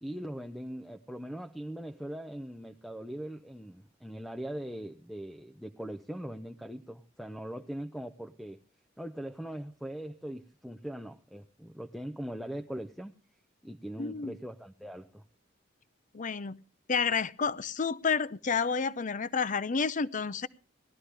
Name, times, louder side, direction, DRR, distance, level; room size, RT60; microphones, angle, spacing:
voice 1, 0.0-8.6 9.0-13.2 13.6-15.2, right 1 dB, ahead, 0.6 m, -41 dB
voice 2, 14.0-14.3 16.1-16.6 16.9-20.5, left 5 dB, 40° left, 0.6 m, -30 dB
19.0 x 13.0 x 3.4 m
head